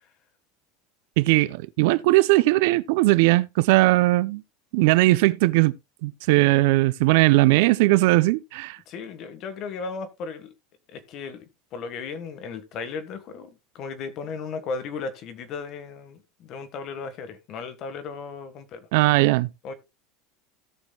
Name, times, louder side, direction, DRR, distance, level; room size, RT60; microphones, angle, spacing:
voice 1, 1.2-4.4 4.7-5.7 6.0-8.8 18.9-19.5, right 20 dB, 65° right, 0.5 m, -19 dB
voice 2, 8.9-10.5 10.9-11.4 11.7-18.9 19.6-19.7, left 5 dB, 40° left, 1.5 m, -35 dB
17.5 x 6.3 x 2.3 m
supercardioid pair, 165°, 0 cm